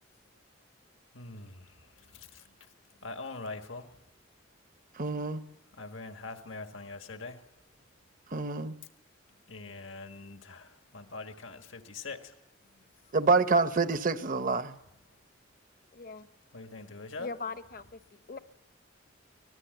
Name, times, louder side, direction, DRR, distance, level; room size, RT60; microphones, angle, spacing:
voice 1, 1.1-1.5 3.0-3.9 5.8-7.4 9.5-10.7 10.9-12.2 16.5-17.3, left 3 dB, 85° left, 6 dB, 1.7 m, -42 dB
voice 2, 5.0-5.4 8.3-8.8 13.1-14.8, right 4 dB, 45° right, 11 dB, 0.9 m, -27 dB
voice 3, 15.9-16.3 17.2-18.0 18.3-18.4, left 4 dB, 50° left, 12 dB, 0.8 m, -40 dB
24.5 x 19.5 x 7.9 m, 0.89 s
head